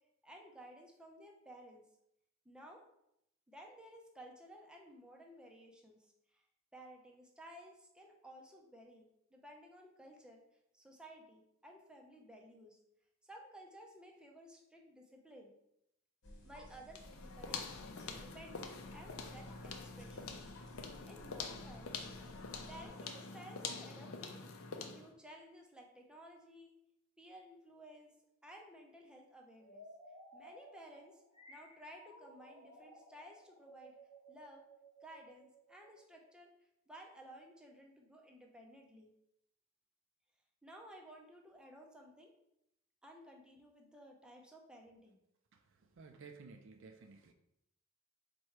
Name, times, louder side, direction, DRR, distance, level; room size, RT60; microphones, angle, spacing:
voice 1, 0.2-1.8 2.4-2.9 3.5-6.4 6.7-10.4 10.7-12.8 13.2-15.5 16.4-20.6 21.0-22.4 22.7-24.4 24.8-26.7 27.2-28.1 28.4-29.8 30.3-31.2 31.5-33.9 34.3-34.6 35.0-36.5 36.9-39.1 40.6-42.3 43.0-45.2, right 1 dB, 5° right, 0 dB, 0.5 m, -56 dB
sound 1, 16.2-22.9, left 1 dB, 65° left, 1.1 m, -57 dB
sound 2, 16.9-25.1, left 4 dB, 80° left, 0.5 m, -46 dB
sound 3, 29.6-36.3, right 1 dB, 25° left, 0.8 m, -58 dB
voice 2, 45.5-47.3, right 4 dB, 65° right, 6 dB, 0.4 m, -55 dB
4.3 x 2.2 x 4.7 m, 0.79 s
head